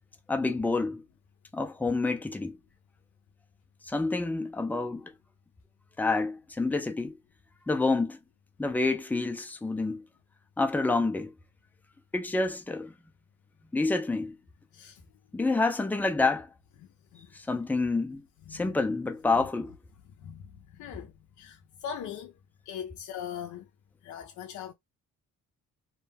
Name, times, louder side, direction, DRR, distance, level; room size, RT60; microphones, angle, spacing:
voice 1, 0.3-1.0 1.5-2.6 3.9-5.1 6.0-7.1 7.7-8.2 8.6-10.0 10.6-11.3 12.1-12.9 13.7-14.4 15.3-16.5 17.5-18.2 18.5-19.7, left 3 dB, 5° left, 0.4 m, -28 dB
voice 2, 17.1-17.6 18.5-18.8 20.2-20.4 20.7-21.1 21.4-22.3 22.7-23.7 24.0-24.7, left 8 dB, 75° left, 0.5 m, -40 dB
2.2 x 2.1 x 3.2 m
cardioid pair, 90°, 30 cm